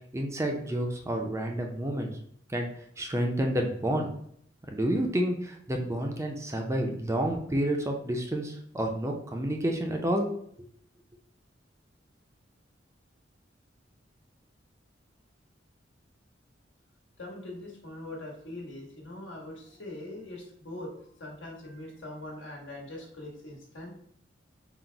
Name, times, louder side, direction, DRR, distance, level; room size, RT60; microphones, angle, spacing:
voice 1, 0.1-2.1 2.5-2.7 3.0-4.1 4.7-10.3, right 1 dB, 15° right, 2 dB, 0.4 m, -29 dB
voice 2, 17.2-23.9, left 1 dB, 75° left, -2 dB, 1.3 m, -42 dB
3.9 x 2.0 x 4.4 m, 0.65 s
head